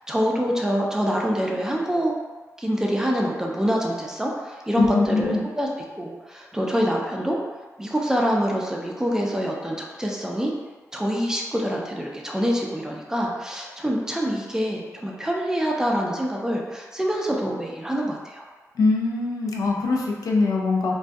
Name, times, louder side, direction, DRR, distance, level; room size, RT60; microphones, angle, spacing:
voice 1, 0.1-2.1 2.6-5.7 6.0-7.4 7.8-10.5 10.9-18.5, equal, 10° right, -1 dB, 0.4 m, -25 dB
voice 2, 4.8-5.4 18.8-21.0, left 3 dB, 75° left, -1 dB, 0.4 m, -22 dB
2.2 x 2.2 x 2.6 m, 1.3 s
cardioid pair, 70°, 6 cm